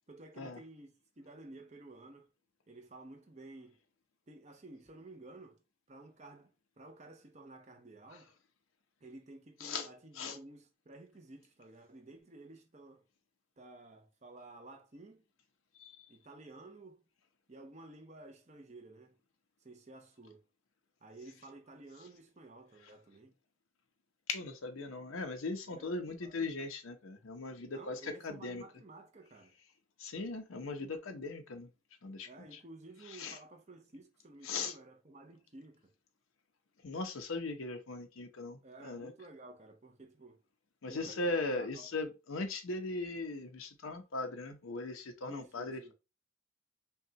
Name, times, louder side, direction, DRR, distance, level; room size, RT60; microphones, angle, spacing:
voice 1, 0.1-2.3 2.7-3.8 4.3-5.6 5.9-8.3 9.0-13.0 13.6-15.2 16.1-17.0 17.5-19.2 19.6-20.4 21.0-23.3 25.7-26.5 27.6-29.6 32.2-35.9 38.6-40.4 40.9-41.9 45.3-45.9, right 2 dB, 35° right, 0.7 m, -53 dB
voice 2, 24.3-28.6 30.0-31.7 32.0-32.3 33.2-33.4 34.5-34.7 36.8-39.1 40.8-45.9, left 3 dB, 90° left, 0.7 m, -39 dB
5.5 x 2.3 x 2.8 m
head